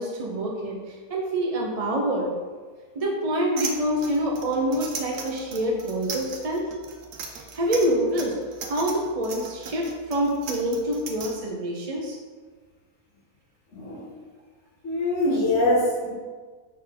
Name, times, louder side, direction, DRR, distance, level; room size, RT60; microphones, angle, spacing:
voice 1, 0.0-2.4 2.9-6.7 7.3-8.3 8.7-12.2, right 1 dB, 35° right, -2 dB, 0.7 m, -26 dB
sound 1, 3.6-11.3, right 5 dB, 80° right, 1.3 m, -36 dB
voice 2, 14.8-16.1, left 1 dB, 55° left, -12 dB, 2.2 m, -23 dB
5.2 x 4.5 x 5.2 m, 1.5 s
omnidirectional pair, 1.6 m